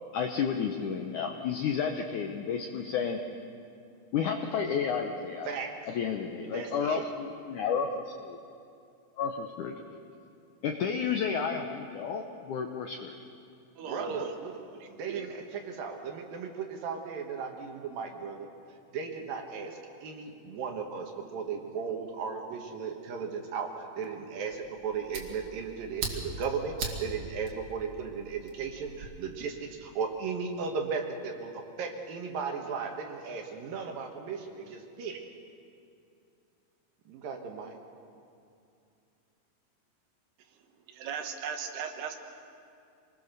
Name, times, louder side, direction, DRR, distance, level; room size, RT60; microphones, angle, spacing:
voice 1, 0.1-3.2 4.1-5.5 5.9-8.4 9.2-9.7 10.6-13.1, left 6 dB, 70° left, 4 dB, 1.9 m, -31 dB
voice 2, 6.5-7.0 13.8-14.6 14.9-18.5 18.9-35.3 37.1-37.8, right 5 dB, 65° right, 3 dB, 3.0 m, -36 dB
voice 3, 13.8-14.3 14.8-15.3 40.9-42.2, right 6 dB, 85° right, 6 dB, 3.6 m, -37 dB
Fire, 24.5-29.1, right 4 dB, 50° right, 3.0 m, -40 dB
26.5 x 20.5 x 6.7 m, 2.5 s
omnidirectional pair, 4.5 m